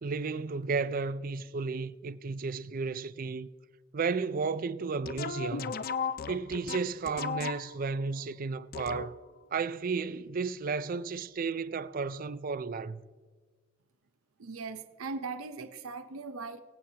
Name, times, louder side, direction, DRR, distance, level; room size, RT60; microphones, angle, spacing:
voice 1, 0.0-3.5 3.9-5.7 6.3-9.1 9.5-13.0, right 4 dB, 40° right, 0.4 m, -33 dB
sound 1, 5.0-7.9 8.7-9.4, left 6 dB, 45° left, 0.4 m, -36 dB
voice 2, 14.4-16.6, right 4 dB, 80° right, 0.7 m, -39 dB
23.5 x 8.3 x 2.8 m
head